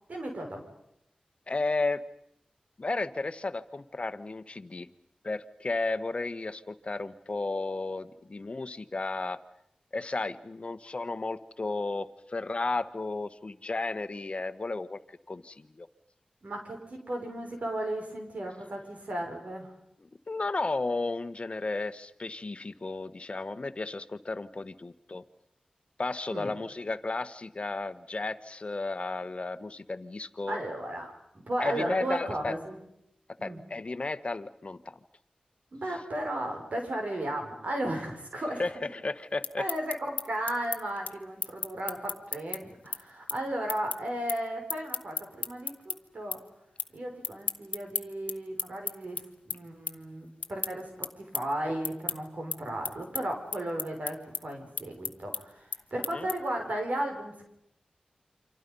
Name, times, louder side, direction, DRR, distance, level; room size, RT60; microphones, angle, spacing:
voice 1, 0.1-0.6 16.4-19.7 26.3-26.5 30.5-31.1 31.3-32.8 33.4-33.6 35.7-38.6 39.6-46.4 46.9-50.9 51.2-57.4, right 1 dB, 65° right, 2 dB, 5.9 m, -35 dB
voice 2, 1.5-2.0 2.8-4.9 5.2-9.4 9.9-15.0 15.3-15.9 20.0-25.2 26.0-30.6 31.6-32.5 33.4-35.0 38.6-39.7 56.1-56.3, left 3 dB, 45° left, 12 dB, 1.3 m, -33 dB
sound 1, 39.2-46.0 46.3-46.9 47.2-56.6, left 5 dB, 85° left, 1.0 m, -35 dB
29.0 x 25.5 x 5.5 m, 0.76 s
cardioid pair, 50°, 3 cm